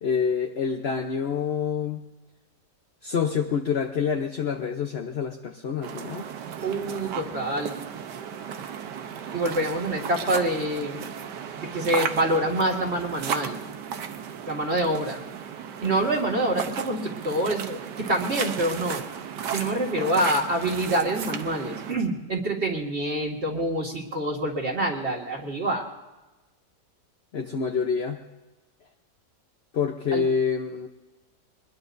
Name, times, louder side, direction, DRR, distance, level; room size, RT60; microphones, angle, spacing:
voice 1, 0.0-2.1 3.0-6.3 27.3-28.2 29.7-30.9, left 6 dB, 45° left, 4 dB, 0.9 m, -27 dB
sound 1, 5.8-21.9, right 7 dB, 85° right, 1.5 m, -35 dB
voice 2, 6.6-7.7 9.3-11.0 11.6-13.6 14.5-15.2 15.8-19.0 19.5-25.9 30.1-30.2, right 1 dB, 40° right, -1 dB, 2.3 m, -26 dB
23.5 x 21.0 x 2.7 m, 1.1 s
omnidirectional pair, 1.8 m